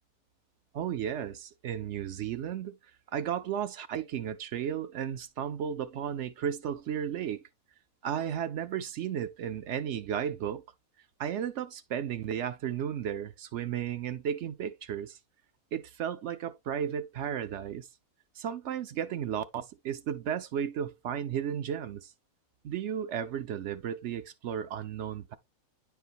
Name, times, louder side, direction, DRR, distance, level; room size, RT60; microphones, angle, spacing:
voice 1, 0.7-2.8 3.1-7.5 8.0-10.6 11.2-15.2 15.7-17.9 18.4-22.1 22.6-25.4, right 9 dB, 65° right, 0.9 m, -34 dB
9.9 x 4.6 x 2.6 m
omnidirectional pair, 1.5 m